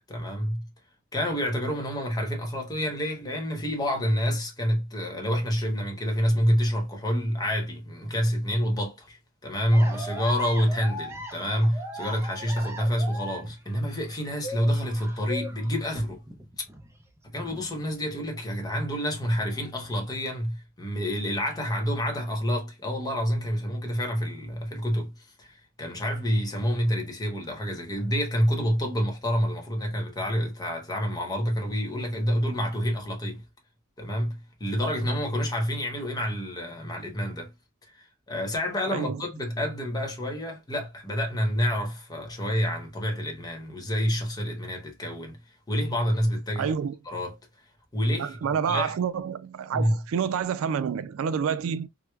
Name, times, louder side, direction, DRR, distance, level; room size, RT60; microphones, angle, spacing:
voice 1, 0.1-0.7 1.1-16.2 17.3-33.4 34.0-37.5 37.9-45.4 45.7-46.7 47.1-47.3 47.9-49.0 49.7-50.0, equal, 20° left, 0.9 m, -28 dB
sound 1, 9.7-18.6 18.9-20.1, equal, 15° right, 0.5 m, -40 dB
voice 2, 46.6-47.0 48.2-51.9, right 7 dB, 75° right, 0.3 m, -28 dB
4.6 x 2.1 x 2.2 m
head